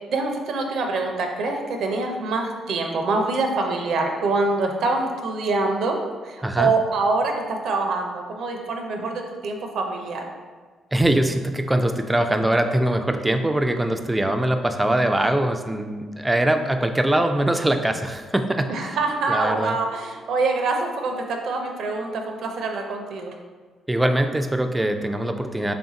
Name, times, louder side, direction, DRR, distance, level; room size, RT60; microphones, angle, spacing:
voice 1, 0.1-6.0 6.2-10.3 18.7-23.3, right 3 dB, 70° right, 3 dB, 0.5 m, -25 dB
voice 2, 6.4-6.7 10.9-19.0 19.3-19.8 23.9-25.7, right 1 dB, 10° right, 6 dB, 0.3 m, -22 dB
3.4 x 2.4 x 4.0 m, 1.5 s
cardioid pair, 90°, 0 cm